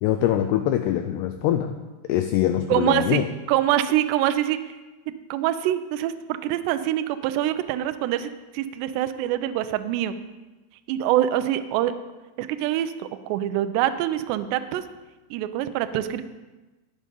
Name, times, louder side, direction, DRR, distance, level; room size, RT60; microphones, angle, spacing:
voice 1, 0.0-1.7 2.1-3.3, left 11 dB, 90° left, 8 dB, 2.3 m, -23 dB
voice 2, 2.7-3.2 3.5-4.6 5.1-6.1 6.4-10.1 10.9-11.9 12.4-14.8 15.3-16.2, right 12 dB, 85° right, 10 dB, 2.5 m, -25 dB
18.0 x 6.5 x 5.4 m, 1.1 s
omnidirectional pair, 5.5 m